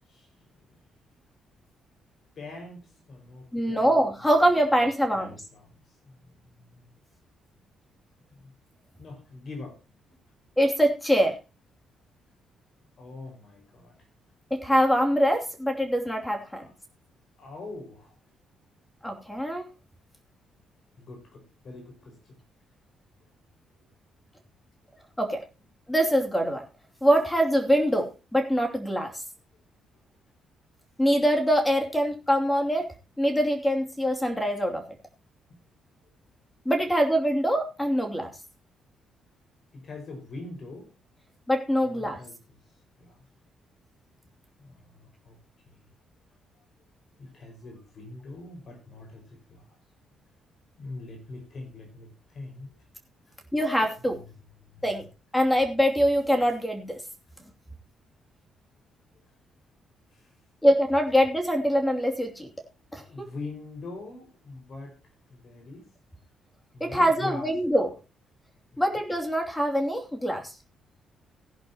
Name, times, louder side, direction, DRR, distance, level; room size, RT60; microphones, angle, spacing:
voice 1, 2.4-2.8 3.1-3.9 5.2-5.7 6.2-6.9 9.0-9.8 13.0-13.9 16.5-16.7 17.4-18.1 21.0-22.4 39.7-40.9 41.8-42.4 43.0-43.2 44.6-45.4 45.7-45.8 47.2-49.7 50.1-50.2 50.8-52.7 54.1-54.2 54.6-54.9 63.1-65.0 65.3-65.9 66.7-67.5 68.7-68.9, left 2 dB, 50° left, 4 dB, 5.5 m, -43 dB
voice 2, 3.5-5.3 10.6-11.4 14.5-16.6 19.0-19.7 25.2-25.4 25.9-26.6 27.0-29.1 31.0-32.9 33.2-34.8 36.6-38.3 41.5-42.2 53.5-54.2 54.8-55.0 55.3-57.0 60.6-62.5 62.9-63.3 66.8-68.0 68.8-70.5, equal, 10° left, 3 dB, 2.8 m, -24 dB
17.5 x 11.0 x 3.0 m, 0.29 s
cardioid pair, 90°, 0 cm